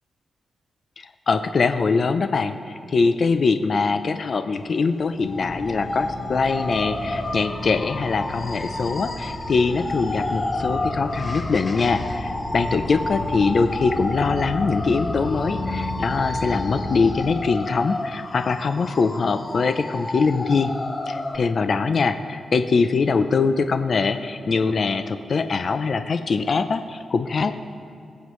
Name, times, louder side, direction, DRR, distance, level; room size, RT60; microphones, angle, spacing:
voice 1, 1.0-20.7 21.1-27.5, left 4 dB, 45° left, 9 dB, 0.5 m, -23 dB
sound 1, 5.2-21.4, left 2 dB, 25° left, 0.8 m, -31 dB
sound 2, 5.2-17.2, left 1 dB, ahead, 2.2 m, -33 dB
24.0 x 8.2 x 3.1 m, 2.6 s
wide cardioid pair, 135°, 0 cm